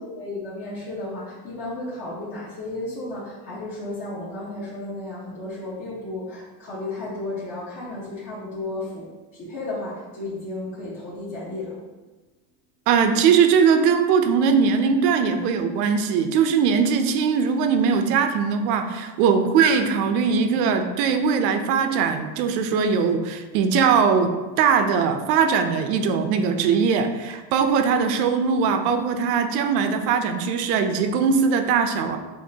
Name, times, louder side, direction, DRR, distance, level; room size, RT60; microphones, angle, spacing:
voice 1, 0.0-11.8, left 2 dB, 50° left, -8 dB, 1.3 m, -33 dB
voice 2, 12.9-32.2, right 6 dB, 90° right, 7 dB, 0.7 m, -20 dB
6.6 x 2.6 x 2.7 m, 1.2 s
cardioid pair, 150°, 46 cm